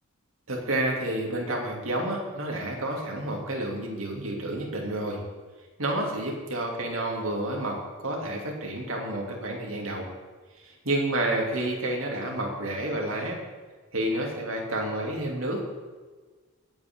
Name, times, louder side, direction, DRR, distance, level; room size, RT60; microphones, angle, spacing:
voice 1, 0.5-5.2 5.8-10.1 10.6-13.4 13.9-15.6, right 1 dB, 70° right, -1 dB, 2.9 m, -30 dB
19.5 x 9.0 x 3.8 m, 1.4 s
head